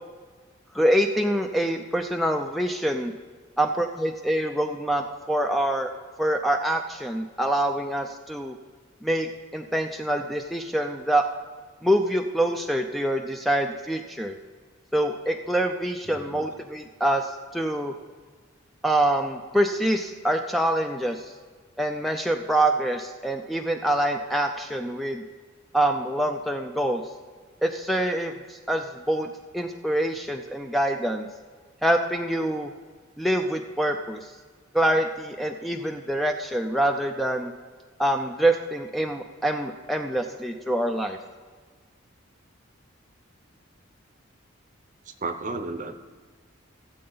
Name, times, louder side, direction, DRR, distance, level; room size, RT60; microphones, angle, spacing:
voice 1, 0.7-3.1 3.6-5.9 6.2-8.6 9.0-11.2 11.8-14.4 14.9-17.9 18.8-21.3 21.8-25.2 25.7-27.0 27.6-31.3 31.8-32.7 33.2-34.3 34.7-37.5 38.0-41.2, right 1 dB, ahead, 4 dB, 0.4 m, -25 dB
voice 2, 16.0-16.5 45.1-45.9, right 3 dB, 40° right, 9 dB, 0.7 m, -33 dB
17.0 x 7.6 x 4.0 m, 1.5 s
head